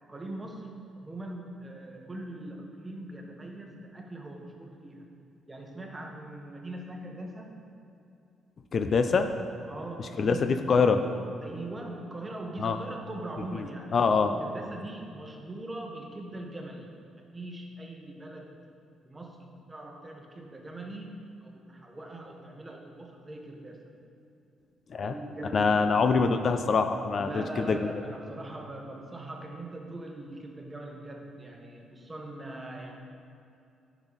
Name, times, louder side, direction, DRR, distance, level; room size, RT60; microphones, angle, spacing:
voice 1, 0.0-5.1 5.5-7.6 9.7-10.5 11.4-14.0 14.4-18.6 19.0-21.1 21.4-23.9 25.0-26.0 27.2-33.0, right 1 dB, 20° right, 1 dB, 1.3 m, -41 dB
voice 2, 8.7-9.3 10.2-11.0 12.6-12.8 13.5-13.6 13.9-14.3 24.9-25.1 25.5-27.8, left 5 dB, 50° left, 8 dB, 0.5 m, -24 dB
10.5 x 6.2 x 4.1 m, 2.5 s
cardioid pair, 90°, 0 cm